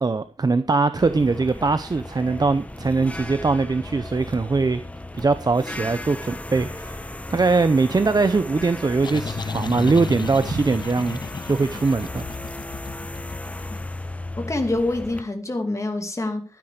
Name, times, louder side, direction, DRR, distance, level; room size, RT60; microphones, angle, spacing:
voice 1, 0.0-4.8 5.1-11.2 11.4-12.3, right 3 dB, 35° right, 0.7 m, -21 dB
sound 1, 1.0-15.2, left 1 dB, 10° left, 1.0 m, -35 dB
sound 2, 8.8-14.1, left 5 dB, 45° left, 0.5 m, -34 dB
voice 2, 14.4-16.4, left 2 dB, 30° left, 2.6 m, -26 dB
13.0 x 9.8 x 5.1 m
wide cardioid pair, 125°, 11 cm